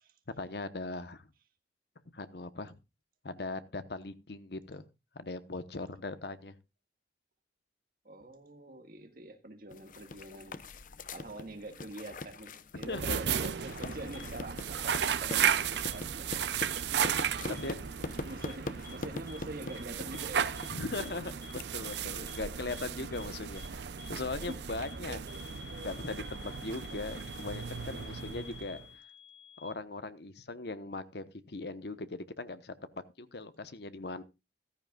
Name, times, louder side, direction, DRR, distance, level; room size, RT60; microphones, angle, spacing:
voice 1, 0.4-1.2 2.1-2.8 3.2-4.9 5.1-6.5 12.9-13.2 17.6-17.7 20.7-21.3 21.7-25.2 25.8-28.8 29.6-32.7 33.2-34.2, left 3 dB, 65° left, 12 dB, 1.0 m, -39 dB
voice 2, 8.0-10.7 11.1-16.4 17.5-20.6 21.0-21.1 24.4-24.6 27.9-28.1 28.7-28.9, right 1 dB, 55° right, 7 dB, 1.7 m, -45 dB
sound 1, 9.7-21.6, left 2 dB, 50° left, 0.7 m, -43 dB
sound 2, 12.8-28.9, right 8 dB, 75° right, 0.6 m, -35 dB
sound 3, 13.3-13.4 14.1-14.2 15.0-15.1 15.8-15.9 16.7-16.8 17.6-17.7 18.4-18.5 18.8-18.9 19.3-19.4 19.7-19.8 20.1-20.2 20.6-20.7 21.0-21.1 21.4-21.5 21.8-21.9 22.3-22.4 22.7-22.8 23.1-23.2 23.6-23.7 24.0-24.1 24.4-24.5 24.8-24.9 25.3-29.7, left 3 dB, 15° left, 7.5 m, -50 dB
14.5 x 13.5 x 2.4 m, 0.26 s
head